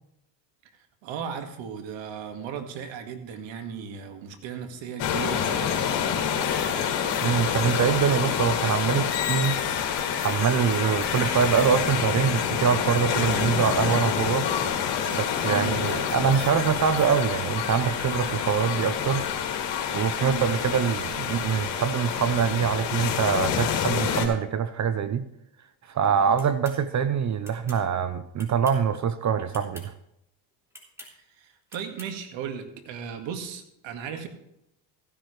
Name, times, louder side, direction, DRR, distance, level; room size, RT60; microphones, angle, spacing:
voice 1, 1.0-5.8 15.5-15.8 20.2-20.5 26.1-26.4 31.4-34.3, right 7 dB, 65° right, 2.0 m, -36 dB
sound 1, 5.0-24.3, left 8 dB, 60° left, 2.7 m, -27 dB
voice 2, 7.2-9.6 10.2-14.5 15.1-19.2 19.9-25.3 25.9-29.9, right 7 dB, 35° right, 0.7 m, -24 dB
sound 2, 26.4-26.8 27.4-27.8 28.4-28.9 29.5-29.9 30.7-31.1 31.7-32.1, left 1 dB, 5° right, 3.2 m, -46 dB
15.0 x 10.5 x 3.3 m
supercardioid pair, 85°, 49 cm